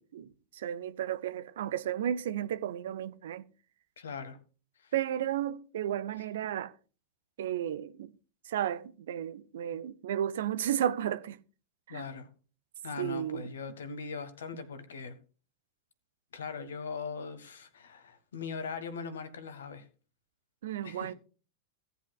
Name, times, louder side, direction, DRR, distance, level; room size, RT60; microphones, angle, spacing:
voice 1, 0.0-3.4 4.9-6.7 7.4-8.1 8.5-11.4 11.9-12.1 13.0-13.5 20.6-21.1, right 10 dB, 60° right, 0.6 m, -33 dB
voice 2, 4.0-4.4 4.8-4.9 6.2-6.3 11.9-12.3 12.8-15.2 16.3-19.9 20.8-21.1, left 5 dB, 65° left, 1.4 m, -40 dB
17.0 x 8.2 x 2.4 m
figure-of-eight pair, 90°, 0 cm